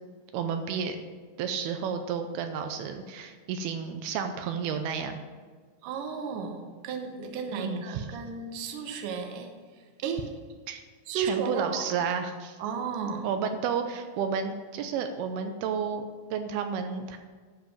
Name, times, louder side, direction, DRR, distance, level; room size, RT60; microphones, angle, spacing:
voice 1, 0.3-1.0 1.4-5.2 7.5-8.1 10.7-10.8 11.1-12.6 13.2-16.0 16.3-17.2, right 6 dB, 85° right, 6 dB, 2.6 m, -31 dB
voice 2, 5.8-9.5 10.0-10.3 11.1-11.8 12.6-13.3, right 6 dB, 70° right, 5 dB, 2.4 m, -33 dB
13.0 x 5.0 x 7.2 m, 1.5 s
omnidirectional pair, 4.4 m